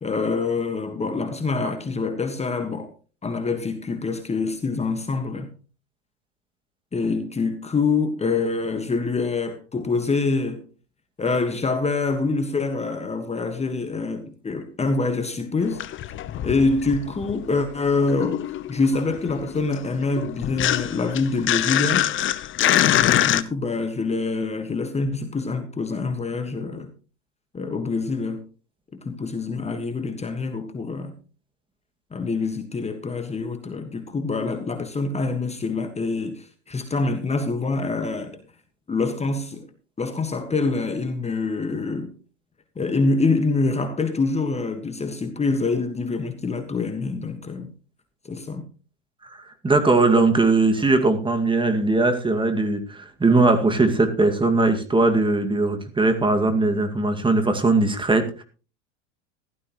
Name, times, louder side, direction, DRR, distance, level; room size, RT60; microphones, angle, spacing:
voice 1, 0.0-2.9 3.2-5.5 6.9-10.6 11.2-15.8 16.4-22.1 23.2-26.9 27.5-28.4 28.9-31.1 32.1-38.4 38.9-39.7 40.0-42.1 42.7-47.7 48.3-48.7, left 3 dB, 15° left, 1.6 m, -25 dB
sound 1, 15.6-17.5 17.8-23.4, left 12 dB, 35° left, 0.8 m, -24 dB
voice 2, 49.3-58.4, right 3 dB, 15° right, 2.1 m, -20 dB
15.5 x 12.5 x 3.1 m
hypercardioid pair, 95°, 37 cm